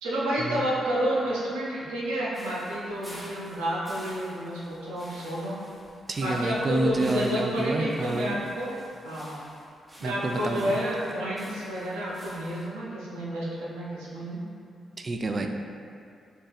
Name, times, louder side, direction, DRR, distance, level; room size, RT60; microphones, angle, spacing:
voice 1, 0.0-5.6 6.2-8.8 9.0-9.4 10.0-14.4, equal, 90° right, -6 dB, 0.6 m, -30 dB
sound 1, 2.3-12.7, equal, 10° right, 1.0 m, -49 dB
voice 2, 6.1-8.3 10.0-10.8 15.0-15.5, right 2 dB, 45° right, 4 dB, 0.3 m, -29 dB
2.6 x 2.4 x 4.0 m, 2.4 s
hypercardioid pair, 45°, 0 cm